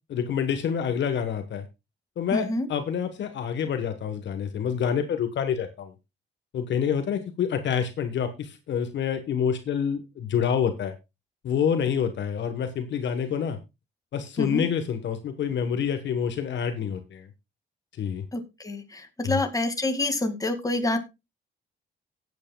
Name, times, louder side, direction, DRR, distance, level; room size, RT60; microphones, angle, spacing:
voice 1, 0.1-1.7 2.2-5.9 6.5-10.9 11.4-13.6 14.1-17.3 18.0-18.2 19.2-19.4, left 7 dB, 65° left, 8 dB, 1.3 m, -27 dB
voice 2, 2.3-2.7 14.4-14.7 18.3-21.0, left 2 dB, 15° left, 6 dB, 2.1 m, -27 dB
17.5 x 8.5 x 2.3 m, 0.24 s
cardioid pair, 90°, 20 cm